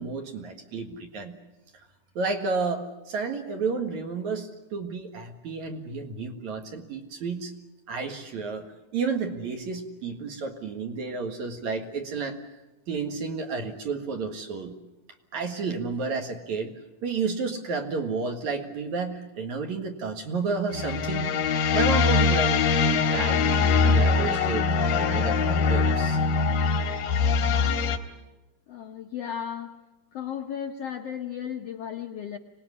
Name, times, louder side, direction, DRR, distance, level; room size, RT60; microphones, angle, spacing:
voice 1, 0.0-1.4 2.2-7.5 7.9-8.7 8.9-12.4 12.9-14.8 15.3-21.3 21.7-24.7 25.0-26.2, right 4 dB, 60° right, 5 dB, 2.9 m, -31 dB
sound 1, 20.7-28.0, left 4 dB, 90° left, 3.2 m, -23 dB
voice 2, 28.7-29.8 30.1-32.4, left 9 dB, 70° left, 5 dB, 1.5 m, -35 dB
25.0 x 19.5 x 9.8 m, 1.1 s
omnidirectional pair, 4.0 m